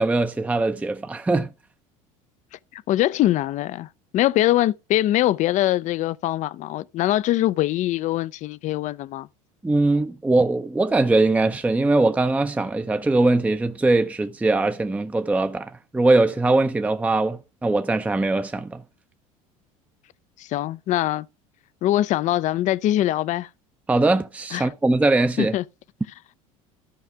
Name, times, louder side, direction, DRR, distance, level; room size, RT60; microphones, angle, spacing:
voice 1, 0.0-1.5 9.6-18.8 23.9-25.6, right 2 dB, 10° right, 0.5 m, -21 dB
voice 2, 2.7-3.9 4.1-9.3 20.4-21.3 21.8-23.5 24.5-24.7 25.4-25.6, left 14 dB, 45° left, 0.4 m, -23 dB
13.5 x 4.9 x 3.3 m
hypercardioid pair, 80°, 17 cm